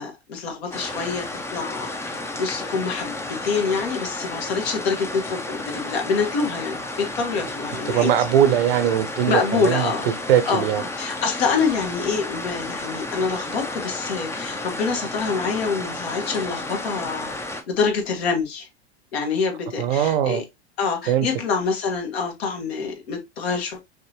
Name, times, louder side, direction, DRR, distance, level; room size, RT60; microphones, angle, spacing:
voice 1, 0.0-8.1 9.3-10.1 10.5-17.3 17.7-18.7 19.1-20.4 20.8-23.8, left 5 dB, 65° left, 1.9 m, -26 dB
sound 1, 0.7-17.6, left 2 dB, 10° left, 0.6 m, -32 dB
voice 2, 7.9-9.9 10.3-10.8 19.8-20.4 21.1-21.3, right 10 dB, 60° right, 0.9 m, -20 dB
5.8 x 2.9 x 3.0 m
hypercardioid pair, 105°, 33 cm